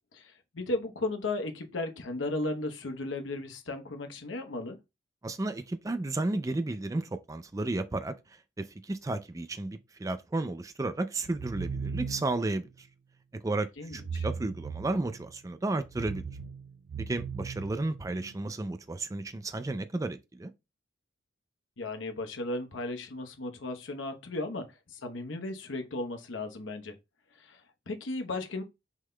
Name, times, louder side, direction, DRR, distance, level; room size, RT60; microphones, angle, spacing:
voice 1, 0.1-4.8 13.8-14.3 21.8-26.9 27.3-28.6, left 2 dB, 90° left, 0.9 m, -35 dB
voice 2, 5.2-12.9 13.4-16.2 17.0-20.5, right 2 dB, 15° right, 0.4 m, -33 dB
sound 1, 11.2-12.5 13.9-15.3 15.8-18.3, right 5 dB, 80° right, 0.4 m, -38 dB
6.0 x 3.8 x 2.2 m
head